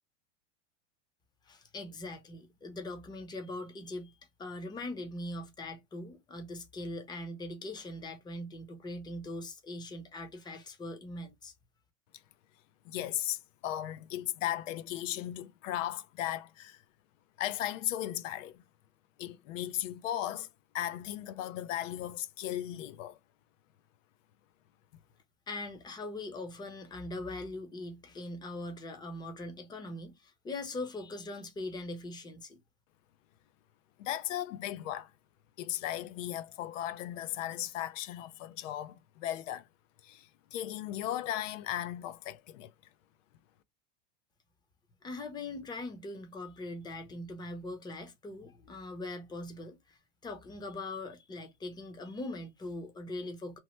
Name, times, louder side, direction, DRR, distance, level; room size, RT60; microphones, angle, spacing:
voice 1, 1.5-11.5 25.5-32.6 45.0-53.6, left 2 dB, 10° left, 0.6 m, -41 dB
voice 2, 12.9-16.8 17.4-18.6 19.2-20.5 20.7-23.2 34.0-35.1 35.6-39.7 40.0-42.7, left 12 dB, 80° left, 0.5 m, -36 dB
3.0 x 2.1 x 3.1 m
supercardioid pair, 130°, 37 cm